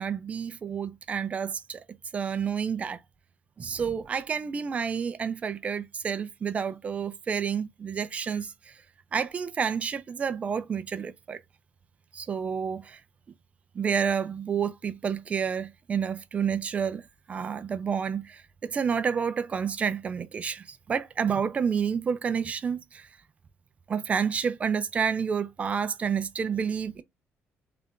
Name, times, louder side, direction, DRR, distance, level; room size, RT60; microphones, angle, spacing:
voice 1, 0.0-1.8 2.1-3.0 3.6-8.7 9.1-11.4 12.1-13.0 13.7-17.0 17.3-23.1 23.9-27.0, right 6 dB, 30° right, 0.5 m, -29 dB
3.3 x 2.5 x 3.6 m
cardioid pair, 145°, 4 cm